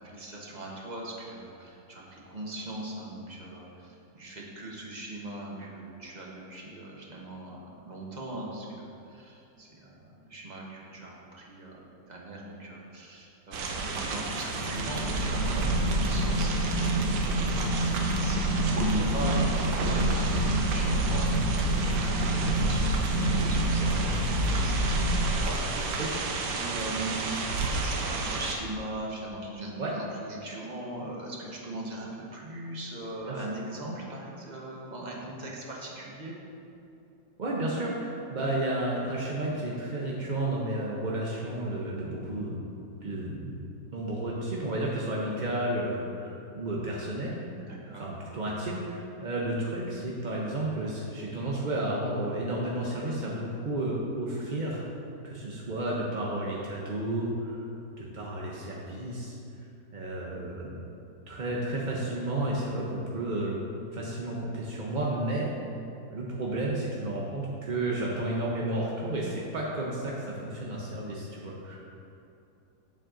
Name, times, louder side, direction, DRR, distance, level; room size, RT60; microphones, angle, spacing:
voice 1, 0.0-7.6 7.9-10.0 10.2-11.8 12.1-17.0 17.5-24.1 24.6-25.9 26.5-27.3 27.6-36.4 47.6-48.1, right 1 dB, 30° right, -3 dB, 1.0 m, -39 dB
sound 1, 13.5-28.5, right 3 dB, 75° right, 1.3 m, -32 dB
sound 2, 14.5-25.3, right 1 dB, 65° left, 0.4 m, -27 dB
voice 2, 25.7-26.1 29.8-29.9 33.2-33.4 37.4-42.5 43.0-43.5 43.9-47.3 47.9-54.8 55.2-57.6 58.0-59.3 59.9-60.7 61.3-63.6 63.9-65.5 66.1-71.9, right 1 dB, 45° right, -4 dB, 0.6 m, -32 dB
7.5 x 7.4 x 3.8 m, 2.7 s
omnidirectional pair, 1.9 m